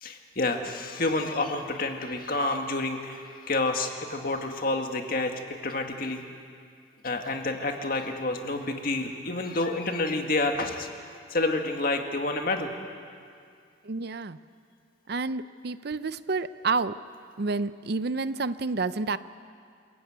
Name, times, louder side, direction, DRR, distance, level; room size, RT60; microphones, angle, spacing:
voice 1, 0.0-6.2 7.0-10.9 11.3-12.7, left 2 dB, 45° left, 4 dB, 2.0 m, -29 dB
voice 2, 13.8-14.4 15.1-17.0 17.4-19.2, right 4 dB, 55° right, 14 dB, 0.6 m, -29 dB
27.5 x 15.0 x 9.4 m, 2.2 s
head